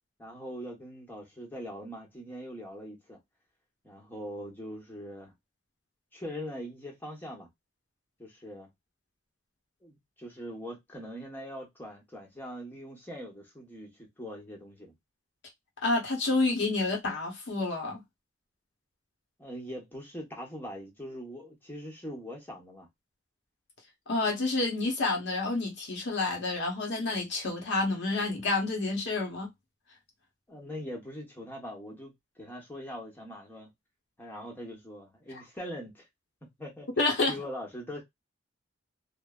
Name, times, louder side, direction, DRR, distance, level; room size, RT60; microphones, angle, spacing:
voice 1, 0.2-3.2 3.8-5.3 6.1-7.5 8.2-8.7 9.8-14.9 19.4-22.9 30.5-33.7 34.2-36.0 36.6-36.9 37.3-38.0, equal, 10° left, 0.9 m, -42 dB
voice 2, 15.8-18.0 24.1-29.5 37.0-37.3, left 3 dB, 65° left, 0.8 m, -29 dB
3.1 x 2.1 x 2.3 m
head